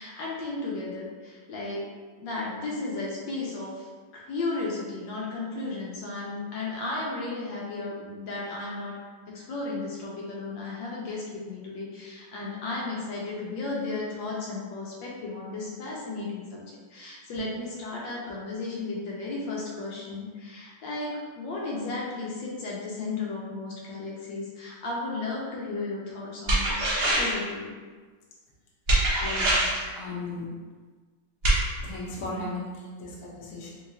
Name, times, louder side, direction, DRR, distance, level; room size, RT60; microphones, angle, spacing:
voice 1, 0.0-1.8 2.2-3.9 4.1-9.0 9.3-27.7, left 3 dB, 75° left, -4 dB, 1.3 m, -34 dB
sound 1, 17.2-17.8, right 3 dB, 85° right, 1.8 m, -38 dB
sound 2, 26.5-27.5 28.9-29.9 31.4-31.6, right 1 dB, 60° right, 0.6 m, -23 dB
voice 2, 29.0-30.5 31.8-33.7, left 2 dB, 55° left, -4 dB, 1.0 m, -37 dB
3.8 x 2.8 x 2.5 m, 1.5 s
omnidirectional pair, 2.1 m